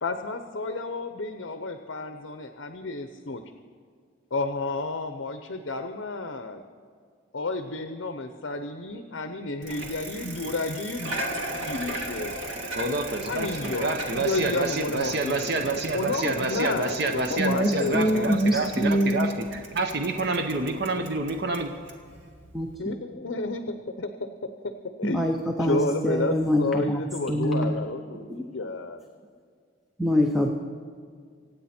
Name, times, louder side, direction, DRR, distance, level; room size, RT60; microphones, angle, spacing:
voice 1, 0.0-3.4 4.3-6.6 7.3-11.2 11.7-12.3 13.3-18.3 22.8-24.1 25.0-25.3 25.6-29.0, left 2 dB, 65° left, 7 dB, 0.8 m, -31 dB
Bicycle, 9.6-22.7, right 1 dB, 70° right, 1.9 m, -37 dB
voice 2, 12.7-21.7, right 2 dB, 55° right, 5 dB, 0.9 m, -28 dB
voice 3, 17.4-19.3 22.5-23.0 25.0-27.8 28.3-28.7 30.0-30.5, equal, ahead, 1 dB, 0.8 m, -25 dB
25.5 x 9.3 x 4.4 m, 2.1 s
head